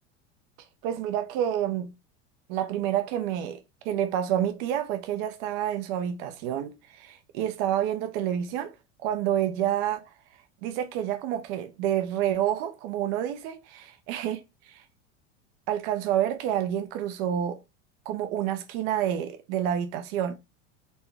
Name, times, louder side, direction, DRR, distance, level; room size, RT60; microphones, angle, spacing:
voice 1, 0.8-1.9 2.5-8.7 9.0-10.0 10.6-14.4 14.7-14.8 15.7-17.6 18.1-20.3, right 10 dB, 60° right, 0.6 m, -28 dB
4.2 x 2.2 x 3.4 m
supercardioid pair, 125°, 34 cm